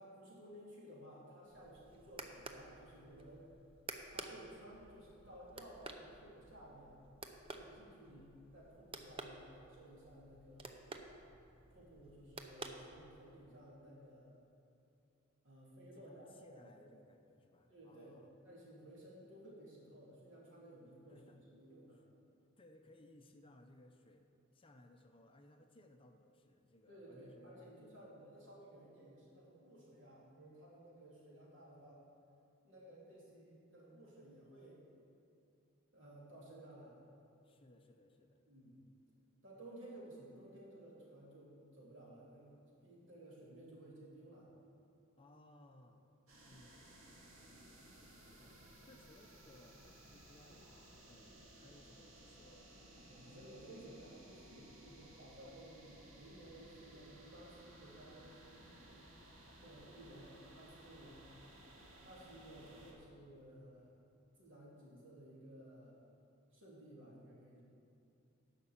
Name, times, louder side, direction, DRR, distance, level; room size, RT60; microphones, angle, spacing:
voice 1, 0.0-3.5 4.1-7.0 7.5-10.8 11.7-14.3 15.4-16.9 17.7-22.0 26.9-32.0 32.6-34.8 35.9-37.0 38.5-38.8 39.4-44.5 47.4-47.7 48.4-48.5 53.1-59.0 59.6-61.3 62.0-63.9 64.4-66.0 66.5-67.6, right 1 dB, 65° right, -6 dB, 3.0 m, -56 dB
sound 1, 1.5-13.4, right 3 dB, 25° right, 0.6 m, -52 dB
voice 2, 8.0-8.3 15.9-18.4 21.1-21.4 21.9-22.0 22.6-24.3 24.5-28.0 37.4-38.4 39.6-39.7 45.2-46.1 46.4-47.0 48.4-54.3, left 1 dB, 25° left, 4 dB, 0.5 m, -63 dB
sound 2, 46.3-62.9, right 1 dB, 80° right, 2.1 m, -59 dB
11.0 x 5.9 x 7.2 m, 2.7 s
head